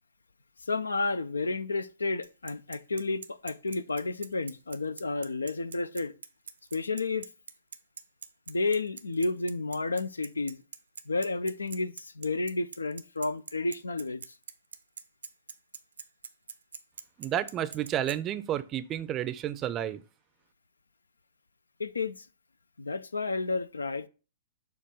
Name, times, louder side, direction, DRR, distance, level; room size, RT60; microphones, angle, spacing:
voice 1, 0.7-6.1 6.7-7.3 8.5-10.6 11.1-14.2 21.8-22.2 22.8-24.1, left 3 dB, 75° left, 0.4 m, -31 dB
Bicycle, 2.2-18.2, right 6 dB, 70° right, 0.6 m, -43 dB
voice 2, 17.2-20.0, right 11 dB, 25° right, 0.5 m, -31 dB
7.0 x 2.5 x 5.3 m
figure-of-eight pair, 110°, 0 cm